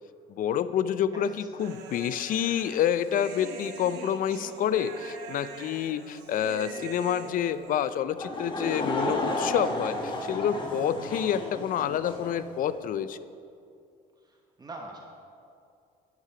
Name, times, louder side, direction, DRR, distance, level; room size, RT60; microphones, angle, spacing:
voice 1, 0.3-13.2, left 9 dB, 55° left, 14 dB, 0.4 m, -28 dB
Human voice, 1.6-8.0, right 5 dB, 85° right, 1.0 m, -43 dB
Laughter / Crowd, 8.2-12.4, left 1 dB, 30° left, 1.5 m, -32 dB
voice 2, 14.2-15.0, right 2 dB, 25° right, 1 dB, 0.9 m, -43 dB
9.4 x 7.5 x 4.9 m, 2.4 s
cardioid pair, 110°, 17 cm